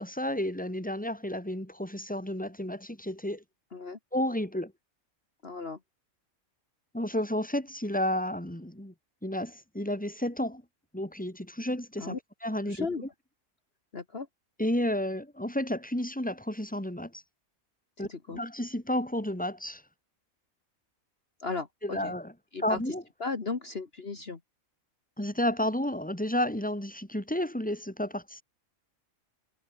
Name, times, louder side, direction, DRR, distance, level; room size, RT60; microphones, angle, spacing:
voice 1, 0.0-3.4 4.1-4.7 6.9-8.9 9.2-10.6 10.9-12.9 14.6-17.2 18.0-19.8 21.8-22.3 22.6-23.0 25.2-28.4, left 1 dB, 5° left, 3.9 m, -31 dB
voice 2, 5.4-5.8 12.0-12.2 12.7-13.0 13.9-14.3 18.0-18.4 21.4-22.1 22.5-22.9 23.2-24.4, left 4 dB, 45° left, 2.0 m, -36 dB
omnidirectional pair, 1.4 m